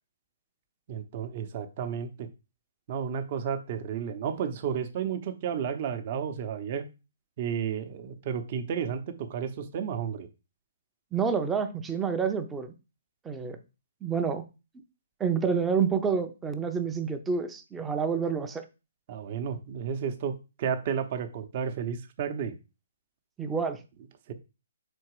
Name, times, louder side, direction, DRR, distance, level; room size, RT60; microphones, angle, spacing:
voice 1, 0.9-2.3 2.9-6.8 7.4-10.3 19.1-22.6 24.3-24.4, right 7 dB, 35° right, 0.8 m, -32 dB
voice 2, 11.1-12.7 13.2-13.6 14.0-14.5 15.2-18.6 23.4-23.8, right 6 dB, 10° right, 0.6 m, -28 dB
5.7 x 4.3 x 4.8 m
hypercardioid pair, 155°, 0 cm